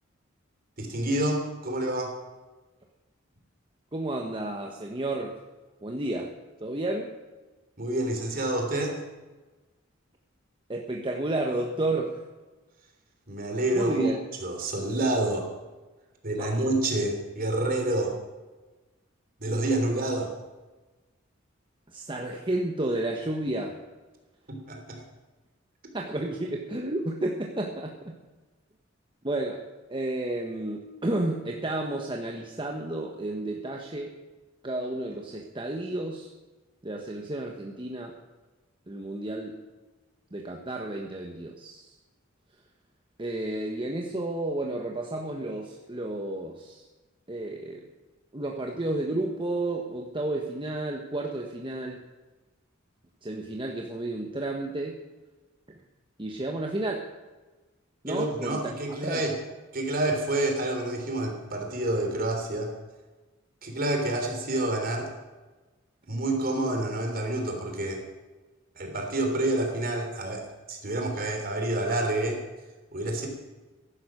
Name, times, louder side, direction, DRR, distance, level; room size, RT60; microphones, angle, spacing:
voice 1, 0.8-2.1 7.8-9.0 13.3-14.1 14.4-15.5 16.2-18.1 19.4-20.3 24.5-25.0 58.1-59.3 59.7-62.7 63.6-65.1 66.1-68.0 68.7-72.4 72.9-73.3, right 1 dB, 50° right, 3 dB, 3.4 m, -28 dB
voice 2, 3.9-5.3 5.8-6.3 6.6-7.1 10.7-12.2 13.7-14.2 16.4-16.7 21.9-23.8 25.9-28.2 29.2-29.6 29.9-34.1 34.6-36.3 36.8-38.2 38.9-39.6 40.3-41.9 43.2-46.8 47.3-47.8 48.3-52.0 53.2-55.0 55.7-55.8 56.2-57.1 58.0-58.7 59.0-59.2, right 2 dB, 25° right, 1 dB, 1.2 m, -31 dB
15.0 x 11.5 x 6.2 m, 1.2 s
head